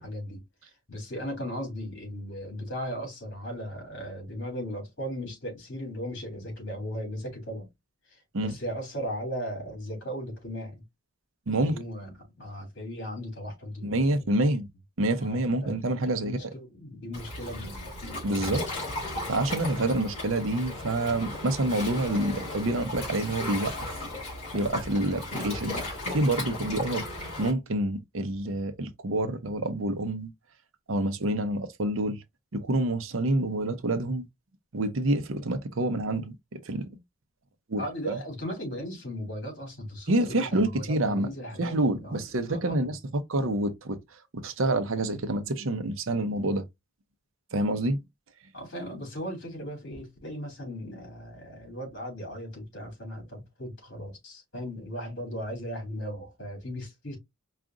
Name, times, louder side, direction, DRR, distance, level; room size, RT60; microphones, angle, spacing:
voice 1, 0.0-7.7 8.1-10.8 11.6-14.3 15.2-17.9 19.6-19.7 36.9-37.0 37.8-42.2 42.5-42.9 48.5-57.2, equal, 55° left, 3.2 m, -37 dB
voice 2, 13.8-14.7 15.0-16.4 18.2-18.6 19.3-23.9 24.2-24.3 24.5-25.7 26.1-27.0 27.4-30.3 30.9-32.2 32.5-34.2 34.7-36.9 37.7-38.2 40.1-41.3 41.6-44.0 44.3-46.6 47.5-48.0, right 1 dB, 65° right, 0.7 m, -27 dB
Waves surf, 17.1-27.5, left 2 dB, 30° left, 3.1 m, -35 dB
4.9 x 2.4 x 3.7 m
head